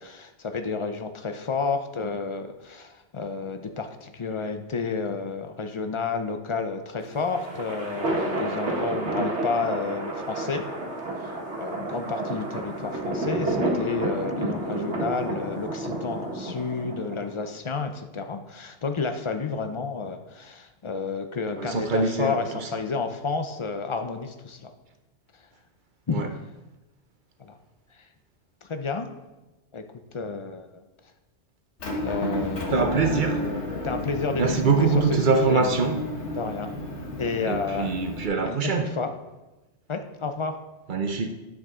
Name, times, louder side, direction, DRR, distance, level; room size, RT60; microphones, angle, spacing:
voice 1, 0.0-10.7 11.2-24.7 26.1-26.2 27.4-27.6 28.6-29.1 29.7-29.9 30.1-30.8 32.0-32.9 33.8-35.7 36.3-36.7 37.2-38.0 38.4-39.1 39.9-40.6, left 4 dB, 40° left, 0.5 m, -31 dB
sound 1, 7.0-17.5, right 2 dB, 70° right, 1.5 m, -30 dB
voice 2, 21.6-22.7 26.1-26.3 32.7-33.5 34.4-36.0 37.4-38.9 40.9-41.3, right 4 dB, 50° right, 0.8 m, -24 dB
Motor vehicle (road) / Engine, 31.8-38.3, left 1 dB, 75° left, 1.6 m, -32 dB
9.3 x 7.3 x 3.7 m
omnidirectional pair, 1.2 m